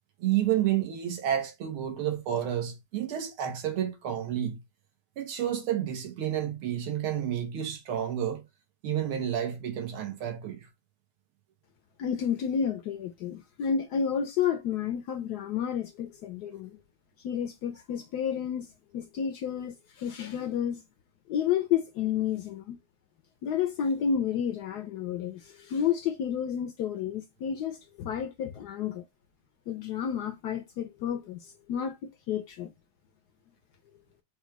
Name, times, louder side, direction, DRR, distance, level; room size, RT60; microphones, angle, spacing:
voice 1, 0.2-4.6 5.2-8.4 8.8-10.7, right 10 dB, 85° right, 1.9 m, -30 dB
voice 2, 12.0-16.8 17.2-18.7 18.9-20.8 21.3-22.8 23.4-29.0 29.7-32.7, left 8 dB, 75° left, 0.9 m, -31 dB
5.0 x 2.3 x 4.5 m
omnidirectional pair, 2.3 m